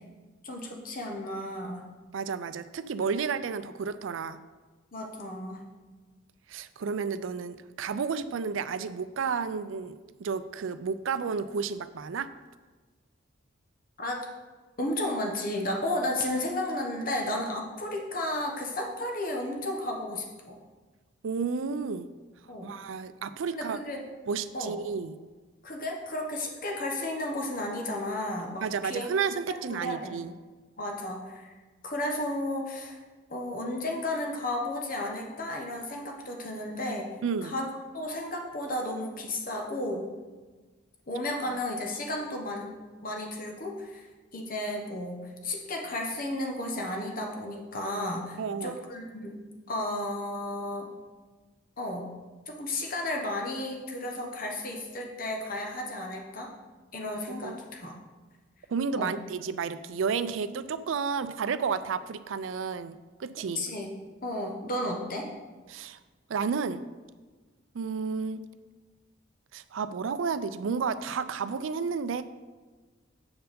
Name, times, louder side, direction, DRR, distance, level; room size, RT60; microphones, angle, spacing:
voice 1, 0.4-1.9 4.9-5.6 14.0-14.3 14.8-20.6 22.5-22.7 23.5-24.0 24.5-24.8 25.6-29.1 29.5-30.1 30.8-31.5 31.8-33.0 33.3-37.1 37.4-37.7 37.9-40.1 41.1-42.8 43.0-44.1 44.3-49.4 49.7-50.9 51.8-52.1 52.5-56.5 56.9-58.0 58.9-59.2 63.5-63.9 64.2-65.3, left 1 dB, 45° left, 1 dB, 1.0 m, -33 dB
voice 2, 2.1-4.4 6.5-12.3 21.2-22.1 22.6-23.8 24.3-25.1 28.6-30.3 37.2-37.6 48.4-48.8 57.4-57.6 58.7-63.6 65.7-66.0 66.3-66.8 67.7-68.4 69.5-72.2, right 5 dB, 75° right, 13 dB, 0.4 m, -31 dB
7.7 x 4.6 x 5.2 m, 1.3 s
head